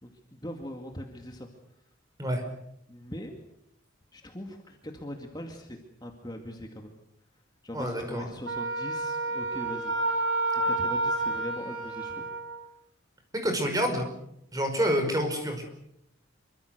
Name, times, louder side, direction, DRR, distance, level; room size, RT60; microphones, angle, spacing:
voice 1, 0.0-1.5 2.9-3.4 4.1-6.9 7.6-9.9 10.6-12.3, equal, 20° left, 3 dB, 2.2 m, -41 dB
voice 2, 7.7-8.3 13.4-14.1 14.5-15.7, equal, 15° right, 5 dB, 5.2 m, -28 dB
Wind instrument woodwind instrument, 8.5-12.6, right 2 dB, 65° right, 6.3 m, -29 dB
26.5 x 24.5 x 6.7 m, 0.78 s
head